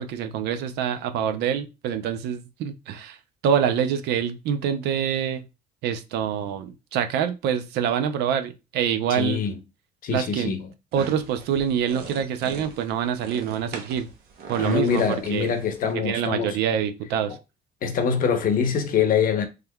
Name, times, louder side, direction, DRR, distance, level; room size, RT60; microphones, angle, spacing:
voice 1, 0.0-3.2 3.4-5.5 5.8-9.4 10.1-10.5 10.9-14.1 14.5-15.5 16.0-17.4, right 8 dB, 85° right, 0.5 m, -26 dB
voice 2, 9.1-9.6 10.0-10.6 14.6-16.6 17.8-19.5, left 7 dB, 55° left, 0.7 m, -24 dB
sound 1, 10.9-15.9, right 5 dB, 70° right, 0.9 m, -40 dB
3.6 x 3.2 x 2.2 m
cardioid pair, 110°, 17 cm